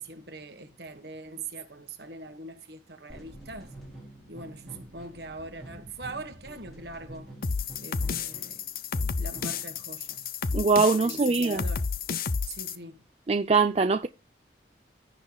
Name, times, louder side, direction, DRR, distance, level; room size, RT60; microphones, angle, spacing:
voice 1, 0.0-3.7 4.3-7.3 7.8-8.7 9.2-10.3 11.0-11.9 12.5-13.0, right 3 dB, 60° right, 1.5 m, -42 dB
sound 1, 3.1-9.8, right 1 dB, ahead, 3.9 m, -47 dB
sound 2, 7.4-12.8, left 5 dB, 50° left, 0.6 m, -31 dB
voice 2, 10.5-11.6 13.3-14.1, right 4 dB, 35° right, 0.4 m, -22 dB
16.0 x 6.6 x 2.3 m
head